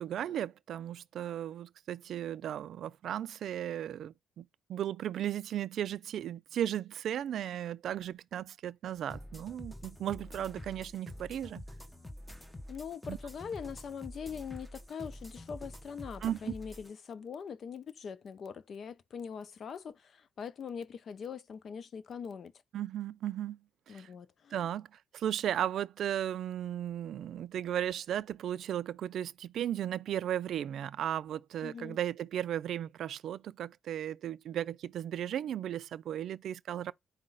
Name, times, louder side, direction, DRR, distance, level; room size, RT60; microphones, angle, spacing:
voice 1, 0.0-4.4 4.7-11.6 13.1-13.2 16.2-16.5 22.7-23.6 23.9-24.1 24.5-24.9 25.1-36.9, right 10 dB, 70° right, 0.3 m, -35 dB
sound 1, 9.1-16.9, left 1 dB, 5° left, 0.9 m, -47 dB
voice 2, 12.7-22.5 23.9-24.7 31.6-32.0, left 6 dB, 55° left, 0.5 m, -42 dB
4.8 x 2.1 x 3.8 m
cardioid pair, 90°, 0 cm